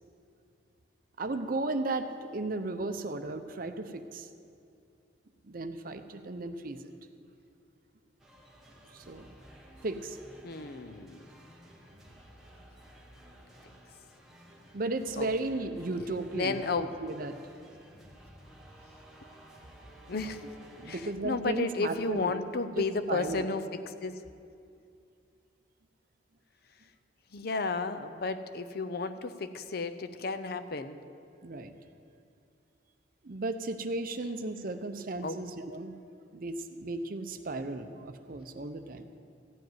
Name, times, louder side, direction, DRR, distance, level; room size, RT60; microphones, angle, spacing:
voice 1, 1.2-4.3 5.4-6.8 8.9-9.3 9.8-10.2 14.7-16.6 17.0-17.4 20.8-22.3 22.8-23.4 31.4-31.7 33.2-36.0 36.3-39.1, right 2 dB, 50° right, 9 dB, 0.6 m, -35 dB
sound 1, 8.2-21.2, equal, ahead, 1.3 m, -54 dB
voice 2, 10.4-11.2 15.2-15.3 16.3-16.9 20.1-20.4 20.9-24.2 27.3-31.0 35.2-35.4, left 3 dB, 55° left, 10 dB, 0.6 m, -33 dB
14.5 x 5.2 x 9.3 m, 2.5 s
head